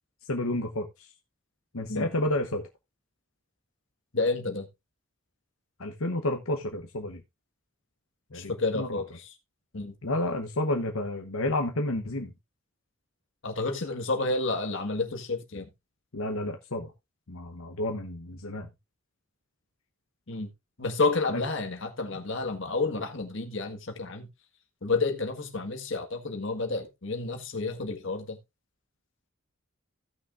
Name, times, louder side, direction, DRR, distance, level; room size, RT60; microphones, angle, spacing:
voice 1, 0.3-1.1 1.7-2.6 5.8-7.2 8.3-9.0 10.0-12.3 16.1-16.9 17.3-18.7 21.3-21.4, left 1 dB, 85° left, 1.1 m, -30 dB
voice 2, 4.1-4.7 8.3-9.3 9.7-9.9 13.4-15.7 20.3-20.5 20.8-24.3 24.8-28.4, left 3 dB, 60° left, 1.7 m, -30 dB
16.5 x 6.1 x 2.5 m
head